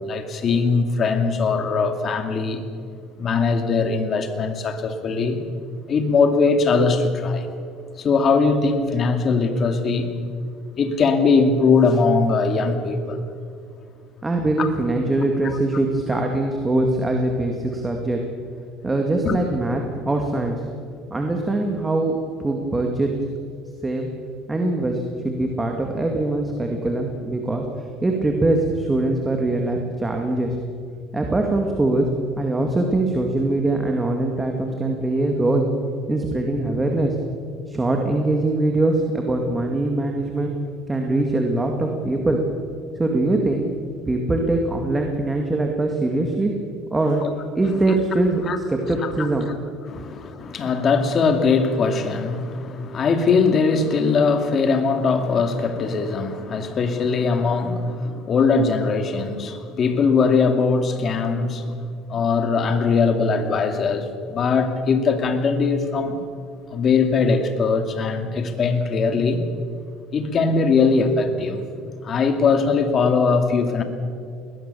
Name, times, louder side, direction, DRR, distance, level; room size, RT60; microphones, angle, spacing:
voice 1, 0.0-2.6 3.2-5.4 5.9-7.5 8.0-10.1 10.8-13.2 14.6-14.7 19.2-19.4 47.2-47.3 48.5-48.6 49.4-49.5 49.9-61.8 62.1-66.2 66.7-69.4 70.1-71.6 72.0-73.8, left 4 dB, 40° left, 7 dB, 2.4 m, -20 dB
voice 2, 14.2-18.2 18.8-20.6 21.1-22.1 22.4-23.1 23.8-24.1 24.5-30.6 31.1-32.1 32.4-35.7 36.1-37.2 37.7-40.5 40.9-42.4 43.0-43.7 44.1-46.5 46.9-47.2 47.6-49.5 50.0-50.1, right 2 dB, 15° right, 2 dB, 2.1 m, -22 dB
21.0 x 19.5 x 7.0 m, 2.3 s
cardioid pair, 120°, 0 cm